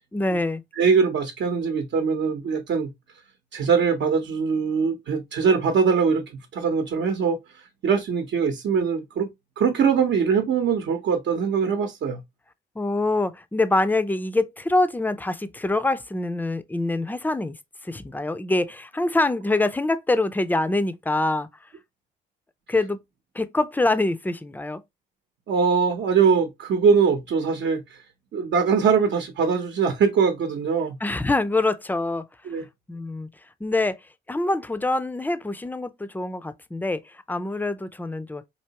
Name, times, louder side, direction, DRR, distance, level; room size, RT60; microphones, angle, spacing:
voice 1, 0.1-0.6 12.8-17.6 17.8-21.5 22.7-23.0 23.3-24.8 31.0-32.2 32.9-33.3 33.6-34.0 34.3-38.4, left 2 dB, 10° left, 0.4 m, -25 dB
voice 2, 0.8-2.9 3.5-6.2 6.5-9.3 9.6-12.2 25.5-28.0 28.3-31.0 32.5-32.6, right 6 dB, 65° right, 0.8 m, -22 dB
4.6 x 2.8 x 2.8 m
cardioid pair, 90°, 20 cm